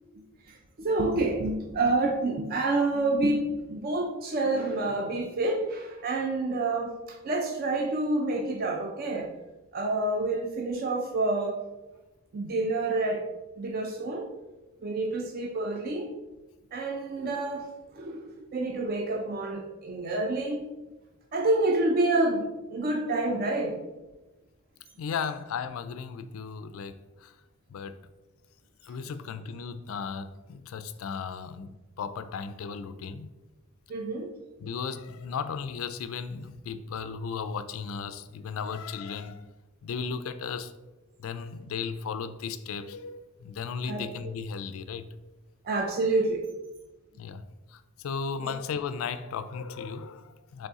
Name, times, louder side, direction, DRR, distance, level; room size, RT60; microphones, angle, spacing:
voice 1, 0.1-9.3 9.7-11.6 12.3-13.3 13.6-14.3 14.8-16.1 16.7-20.7 21.3-23.9 33.9-34.3 43.9-44.1 45.6-46.4 48.4-48.5, right 2 dB, 45° right, 0.4 m, -28 dB
voice 2, 25.0-27.3 27.7-28.0 28.8-33.3 34.6-39.4 39.8-40.7 41.2-45.1 47.2-47.4 47.7-50.7, left 6 dB, 70° left, 0.3 m, -35 dB
4.0 x 3.3 x 3.5 m
head